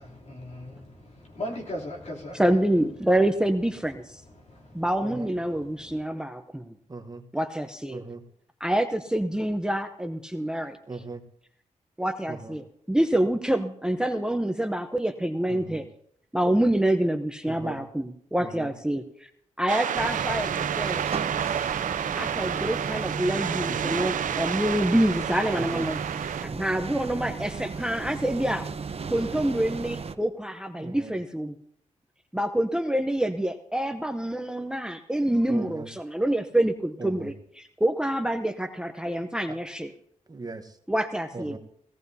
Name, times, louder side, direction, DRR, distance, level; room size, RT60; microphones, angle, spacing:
voice 1, 0.0-2.4 4.4-4.8 5.5-6.0, left 1 dB, 55° left, -2 dB, 3.0 m, -38 dB
voice 2, 2.3-4.2 4.7-6.7 7.3-8.0 8.6-10.8 12.0-15.8 16.3-19.3 19.6-21.1 22.2-26.0 26.4-28.7 29.1-31.5 32.3-39.9 40.9-41.6, right 1 dB, 5° right, 8 dB, 0.7 m, -27 dB
voice 3, 6.9-7.2 7.9-8.2 10.9-11.2 12.3-12.5 15.5-15.8 17.4-17.8 18.4-18.7 23.7-24.0 25.5-25.8 30.8-31.1 35.5-35.9 37.0-37.3 39.5-39.6 40.3-40.8 41.3-41.6, right 3 dB, 30° right, 7 dB, 1.1 m, -38 dB
sound 1, 19.7-26.5, right 9 dB, 80° right, 0.4 m, -30 dB
sound 2, 20.0-30.1, right 5 dB, 50° right, 0.8 m, -35 dB
18.0 x 16.5 x 2.7 m, 0.67 s
cardioid pair, 80°, 13 cm